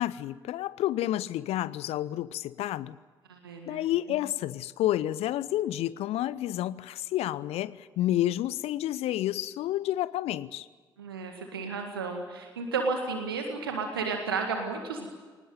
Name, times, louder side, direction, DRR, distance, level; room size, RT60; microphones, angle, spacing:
voice 1, 0.0-3.0 3.7-10.7, left 13 dB, 60° left, 20 dB, 0.7 m, -30 dB
voice 2, 3.3-3.8 11.0-15.1, right 4 dB, 80° right, 4 dB, 1.9 m, -32 dB
23.0 x 19.5 x 9.2 m, 1.4 s
figure-of-eight pair, 40°, 12 cm